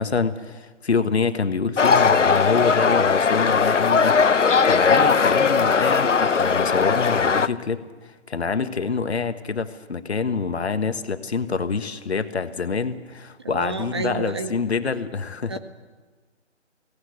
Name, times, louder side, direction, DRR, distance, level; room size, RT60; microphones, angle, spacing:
voice 1, 0.0-15.6, left 5 dB, 65° left, 10 dB, 1.5 m, -26 dB
sound 1, 1.8-7.5, left 5 dB, 90° left, 0.9 m, -19 dB
voice 2, 13.4-14.5 15.5-15.6, right 3 dB, 25° right, 9 dB, 0.7 m, -30 dB
21.5 x 17.5 x 8.3 m, 1.4 s
figure-of-eight pair, 155°, 36 cm